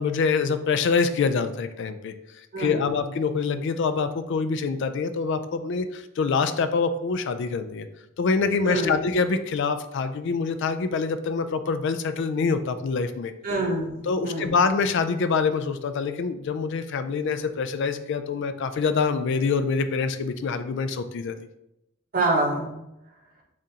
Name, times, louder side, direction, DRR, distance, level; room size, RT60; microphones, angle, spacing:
voice 1, 0.0-7.9 8.2-13.3 14.1-21.4, left 5 dB, 60° left, 10 dB, 0.3 m, -25 dB
voice 2, 2.5-3.0 8.6-9.0 13.4-14.5 22.1-22.8, right 2 dB, 45° right, -1 dB, 1.1 m, -26 dB
7.1 x 2.5 x 2.8 m, 0.84 s
head